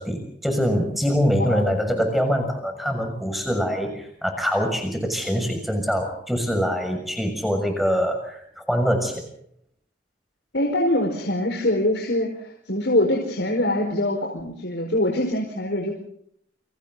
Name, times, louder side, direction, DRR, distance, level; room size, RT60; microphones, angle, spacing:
voice 1, 0.0-9.2, equal, ahead, 5 dB, 6.4 m, -24 dB
voice 2, 1.3-1.6 10.5-15.9, left 1 dB, 70° left, 0 dB, 4.9 m, -24 dB
29.0 x 25.5 x 4.0 m, 0.68 s
head